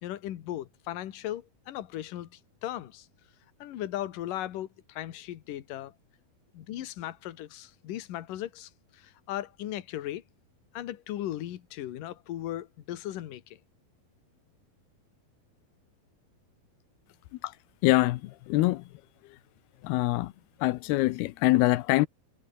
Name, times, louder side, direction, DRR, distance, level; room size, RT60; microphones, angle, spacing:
voice 1, 0.0-3.1 3.6-5.9 6.5-10.2 10.7-13.6, left 13 dB, 65° left, 3.0 m, -37 dB
voice 2, 17.8-18.8 19.3-19.4 19.8-20.3 20.6-22.1, left 19 dB, 85° left, 2.7 m, -24 dB
omnidirectional pair, 4.4 m